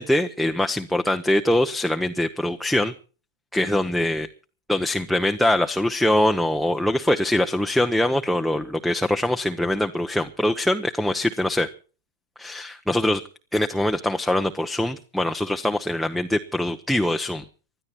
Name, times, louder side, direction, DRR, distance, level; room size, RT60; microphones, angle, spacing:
voice 1, 0.0-2.9 3.5-4.3 4.7-11.7 12.4-13.2 13.5-17.4, left 1 dB, ahead, 4 dB, 0.9 m, -23 dB
20.5 x 12.5 x 4.4 m, 0.37 s
hypercardioid pair, 110°, 0 cm